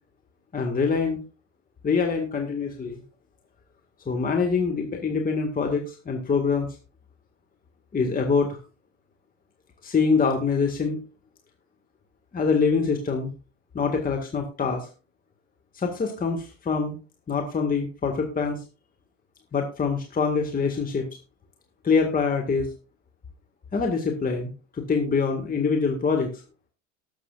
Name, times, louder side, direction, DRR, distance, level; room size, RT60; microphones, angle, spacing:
voice 1, 0.5-1.2 1.8-3.0 4.1-6.7 7.9-8.6 9.8-11.0 12.3-13.3 13.7-14.9 15.7-17.0 17.3-18.6 19.5-21.1 21.8-22.7 23.7-26.3, left 5 dB, 20° left, 2 dB, 2.0 m, -24 dB
19.0 x 7.4 x 2.5 m, 0.33 s
hypercardioid pair, 75°, 38 cm